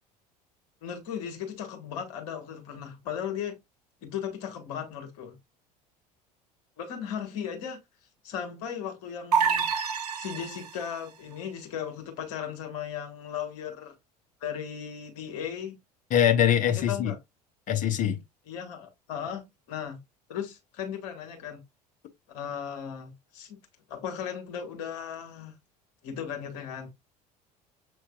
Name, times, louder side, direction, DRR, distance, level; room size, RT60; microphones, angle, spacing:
voice 1, 0.8-3.6 4.0-5.4 6.8-7.8 8.2-9.9 10.2-13.9 14.4-15.8 16.7-17.2 18.5-20.0 20.3-21.6 22.3-23.6 23.9-25.6 26.0-26.9, left 8 dB, 60° left, 1.3 m, -36 dB
sound 1, 9.3-10.9, right 6 dB, 75° right, 0.6 m, -27 dB
voice 2, 16.1-17.1 17.7-18.2, left 10 dB, 40° left, 1.0 m, -23 dB
6.9 x 3.1 x 2.4 m
figure-of-eight pair, 65°, 20 cm